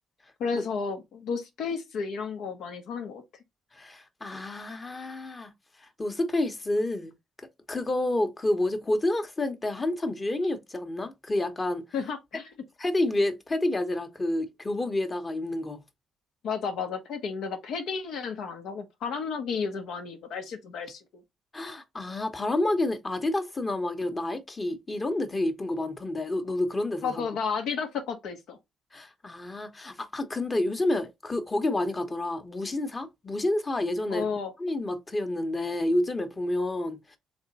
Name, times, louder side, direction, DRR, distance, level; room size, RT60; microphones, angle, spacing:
voice 1, 0.4-3.2 11.9-12.5 16.4-21.0 27.0-28.6 34.1-34.5, left 5 dB, 80° left, 0.9 m, -32 dB
voice 2, 3.8-5.5 6.0-7.1 7.7-11.9 12.8-15.8 21.5-27.2 28.9-34.3 34.6-37.2, left 1 dB, 25° left, 0.9 m, -29 dB
3.5 x 3.2 x 4.0 m
cardioid pair, 90°, 0 cm